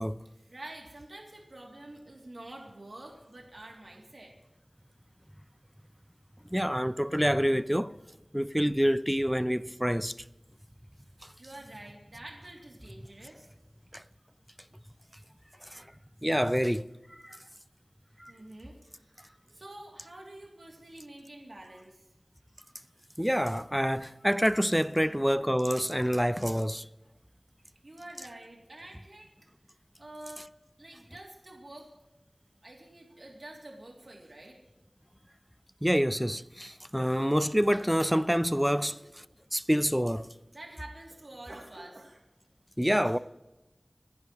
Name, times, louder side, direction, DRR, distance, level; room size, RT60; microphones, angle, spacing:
voice 1, 0.2-4.3 9.4-9.5 11.4-13.4 18.3-22.1 25.0-25.3 27.8-29.3 30.0-30.5 30.8-31.9 32.6-34.6 38.7-39.0 40.5-42.2 43.0-43.2, right 1 dB, 70° right, 2.9 m, -48 dB
voice 2, 6.5-7.9 8.3-10.1 13.9-14.0 15.7-15.8 16.2-16.9 17.2-17.4 18.2-18.3 23.2-26.9 35.8-39.0 39.5-40.3 42.8-43.2, equal, 5° right, 0.6 m, -27 dB
26.0 x 11.0 x 3.1 m
wide cardioid pair, 45°, 0 cm